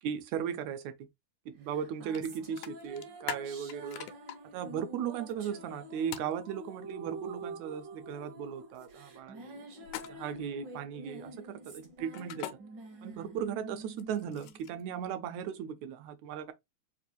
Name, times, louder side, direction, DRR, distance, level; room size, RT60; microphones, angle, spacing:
voice 1, 0.0-1.1 1.5-4.1 4.5-9.6 10.1-12.6 13.0-16.5, right 8 dB, 80° right, 2.0 m, -37 dB
sound 1, 1.7-15.4, right 2 dB, 60° right, 1.2 m, -47 dB
sound 2, 2.1-2.3 2.6-4.4 6.1-6.3 9.8-10.4 12.1-12.5 13.9-14.8, left 11 dB, 85° left, 2.0 m, -41 dB
4.9 x 2.5 x 2.9 m
omnidirectional pair, 3.4 m